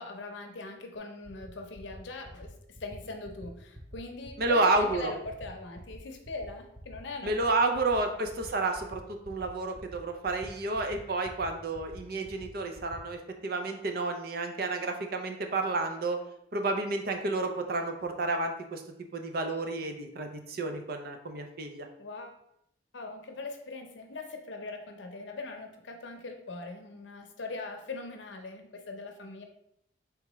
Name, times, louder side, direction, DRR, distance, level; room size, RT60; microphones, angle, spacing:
voice 1, 0.0-7.5 8.2-8.3 22.0-22.4 22.9-29.4, left 3 dB, 80° left, 4 dB, 0.7 m, -41 dB
sound 1, 0.9-1.0 1.2-1.5 1.7-2.0 2.2-2.5 2.7-3.0 3.2-3.5 3.7-4.0 4.2-4.5 4.7-5.0 5.2-5.5 5.7-6.0 6.2-6.5 6.7-7.0 7.2-7.5 7.7-8.0 8.2-8.5 8.7-9.0 9.2-9.5 9.7-10.0 10.2-10.5 10.7-11.0 11.2-11.5 11.7-12.0 12.2-12.5 12.7-13.0, equal, 10° right, 0.4 m, -48 dB
voice 2, 4.4-5.1 7.2-16.2 16.5-18.8 19.1-21.9, right 2 dB, 55° right, 5 dB, 0.6 m, -30 dB
4.6 x 3.5 x 3.0 m, 0.76 s
head